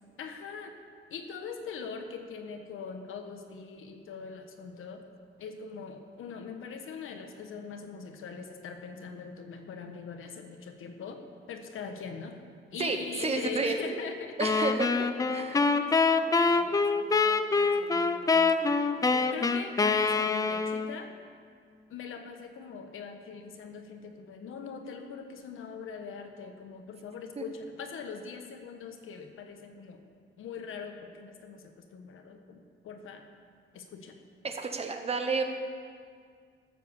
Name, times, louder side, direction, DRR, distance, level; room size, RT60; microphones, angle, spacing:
voice 1, 0.2-0.8 1.1-5.0 5.4-11.2 11.5-12.4 12.7-14.4 14.9-21.1 21.9-30.0 30.4-33.2 33.7-34.2, left 5 dB, 75° left, 5 dB, 1.3 m, -42 dB
voice 2, 12.8-13.8 14.4-14.9 15.3-15.6 27.4-27.5 34.4-35.4, right 4 dB, 30° right, 5 dB, 1.0 m, -30 dB
sound 1, 14.4-21.0, left 4 dB, 15° left, 0.4 m, -25 dB
13.0 x 7.5 x 7.1 m, 2.1 s
wide cardioid pair, 170°, 21 cm